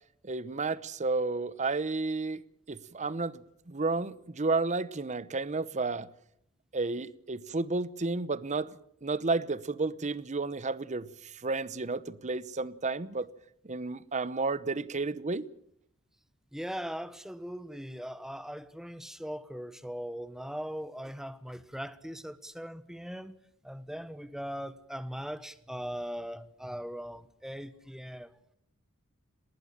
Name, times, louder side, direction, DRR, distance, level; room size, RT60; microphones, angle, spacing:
voice 1, 0.2-6.1 6.7-13.3 13.6-15.5, right 3 dB, 35° right, 0.8 m, -32 dB
voice 2, 16.5-23.3 23.6-28.3, equal, ahead, 1.1 m, -40 dB
19.5 x 19.0 x 8.8 m
head